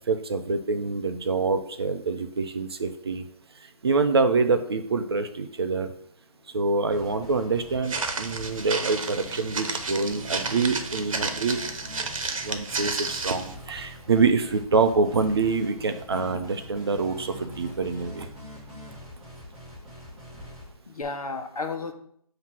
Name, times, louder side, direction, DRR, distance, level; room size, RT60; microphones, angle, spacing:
voice 1, 0.1-3.3 3.8-5.9 6.5-11.6 12.4-18.3, right 4 dB, 40° right, 7 dB, 0.6 m, -26 dB
sound 1, 6.9-21.0, equal, ahead, 0.7 m, -43 dB
Walk footsteps, 7.8-13.5, right 3 dB, 55° right, 1.0 m, -31 dB
voice 2, 12.1-12.7 20.9-21.9, left 3 dB, 65° left, 5 dB, 1.1 m, -34 dB
7.2 x 2.9 x 6.0 m, 0.66 s
figure-of-eight pair, 160°, 20 cm